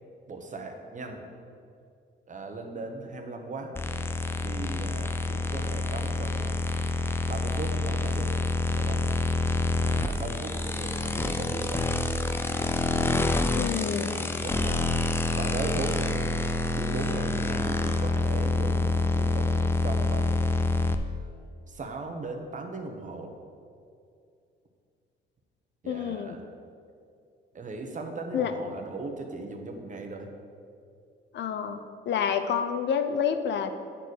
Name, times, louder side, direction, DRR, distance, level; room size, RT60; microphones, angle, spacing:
voice 1, 0.3-1.3 2.3-3.7 4.4-6.6 7.3-8.4 8.7-9.3 9.8-11.9 14.1-15.1 15.3-16.4 16.7-20.4 21.7-23.3 25.8-26.4 27.5-30.3, right 3 dB, 40° right, 4 dB, 1.1 m, -38 dB
sound 1, 3.7-20.9, left 2 dB, 10° left, 0.5 m, -27 dB
voice 2, 13.6-14.2 25.8-26.4 28.3-28.5 31.3-31.8 32.1-33.7, left 8 dB, 65° left, 9 dB, 0.6 m, -28 dB
8.9 x 4.2 x 6.5 m, 2.4 s
cardioid pair, 90°, 20 cm